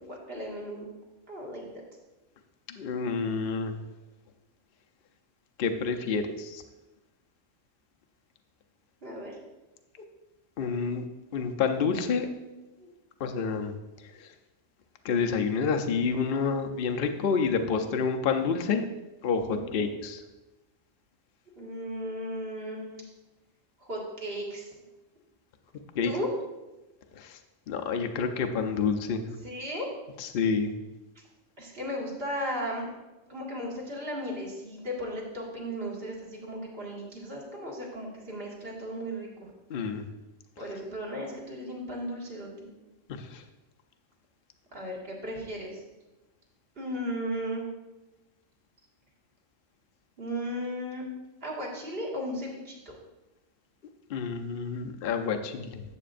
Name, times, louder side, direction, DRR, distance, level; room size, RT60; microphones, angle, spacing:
voice 1, 0.0-0.9 1.3-1.7 9.0-9.4 12.8-12.9 19.5-19.9 21.6-23.0 23.8-24.7 26.0-26.3 29.4-29.9 31.6-32.9 33.3-39.5 40.6-42.7 44.7-45.8 46.8-47.7 50.2-51.0 51.4-52.8, equal, 50° right, -3 dB, 2.1 m, -36 dB
voice 2, 2.7-3.8 5.6-6.6 10.6-11.0 11.3-12.3 13.2-13.7 14.2-14.3 15.0-18.9 19.2-20.2 26.0-26.1 27.2-27.4 27.7-29.3 30.2-30.7 39.7-40.1 43.1-43.4 54.1-55.8, left 5 dB, 55° left, 5 dB, 0.8 m, -28 dB
12.5 x 7.7 x 2.5 m, 1.1 s
omnidirectional pair, 1.3 m